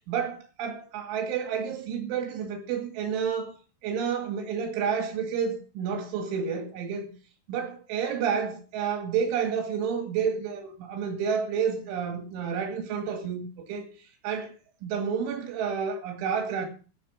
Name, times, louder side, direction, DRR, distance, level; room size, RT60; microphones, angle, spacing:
voice 1, 0.1-3.5 3.8-7.1 7.5-13.9 14.2-14.5 14.8-16.7, right 7 dB, 90° right, 4.7 m, -30 dB
12.0 x 6.7 x 8.7 m
omnidirectional pair, 5.4 m